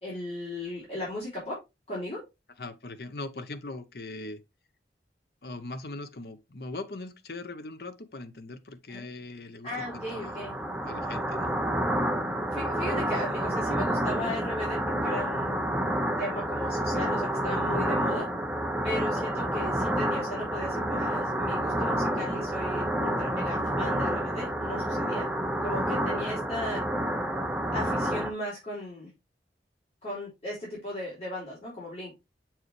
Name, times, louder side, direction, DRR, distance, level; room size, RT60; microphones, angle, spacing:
voice 1, 0.0-1.6 1.9-2.2 8.9-9.0 9.6-10.5 12.5-15.6 16.2-18.3 18.8-25.3 25.6-26.8 27.7-29.1 30.0-32.2, left 1 dB, 35° left, 3.8 m, -36 dB
voice 2, 2.6-4.4 5.4-10.4 10.8-11.7, left 2 dB, 65° left, 0.8 m, -40 dB
sound 1, 9.7-28.3, right 1 dB, 5° right, 0.8 m, -29 dB
7.1 x 4.6 x 3.2 m
head